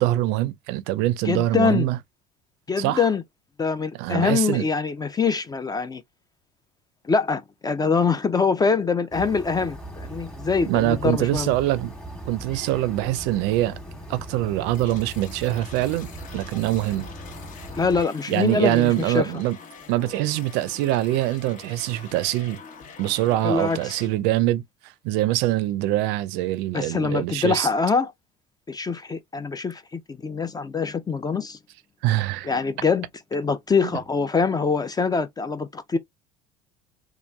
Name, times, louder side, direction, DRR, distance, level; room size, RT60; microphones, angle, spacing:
voice 1, 0.0-2.0 2.8-3.1 3.9-4.7 10.7-11.9 12.3-13.8 14.1-16.1 16.3-17.1 18.3-19.6 19.9-22.6 23.0-27.7 32.0-32.5, right 15 dB, 65° right, 0.5 m, -24 dB
voice 2, 1.2-1.9 2.7-3.2 3.6-6.0 7.0-11.5 17.8-19.3 23.4-24.0 26.7-28.1 28.7-31.6 32.4-33.1 33.3-36.0, left 5 dB, 20° left, 0.4 m, -24 dB
sound 1, 9.1-18.1, right 1 dB, 5° left, 1.2 m, -39 dB
sound 2, 14.7-24.1, left 5 dB, 45° left, 0.9 m, -45 dB
2.9 x 2.4 x 2.2 m
hypercardioid pair, 70°, 19 cm